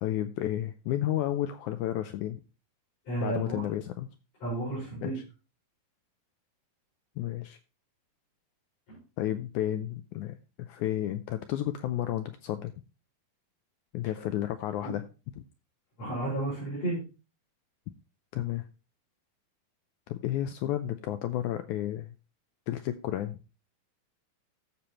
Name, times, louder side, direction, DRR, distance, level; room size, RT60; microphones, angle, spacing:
voice 1, 0.0-2.4 3.2-4.1 5.0-5.2 7.2-7.6 9.2-12.7 13.9-15.0 15.4-15.5 18.3-18.7 20.1-22.1 22.7-23.4, left 12 dB, 80° left, 9 dB, 1.7 m, -32 dB
voice 2, 3.1-3.6 4.4-5.2 8.9-9.0 14.8-15.0 16.0-17.0, right 2 dB, 50° left, -8 dB, 5.9 m, -32 dB
14.5 x 6.7 x 2.9 m, 0.32 s
omnidirectional pair, 4.0 m